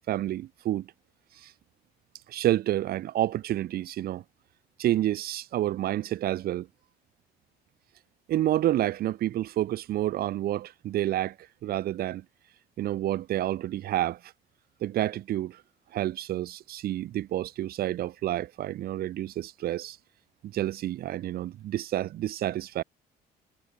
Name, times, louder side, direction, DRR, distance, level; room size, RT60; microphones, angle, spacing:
voice 1, 0.1-0.9 1.4-1.5 2.3-4.2 4.8-6.7 8.3-11.3 11.6-12.2 12.8-14.2 14.8-15.6 15.9-20.0 20.4-22.8, right 13 dB, 65° right, 1.3 m, -29 dB
cardioid pair, 110°, 17 cm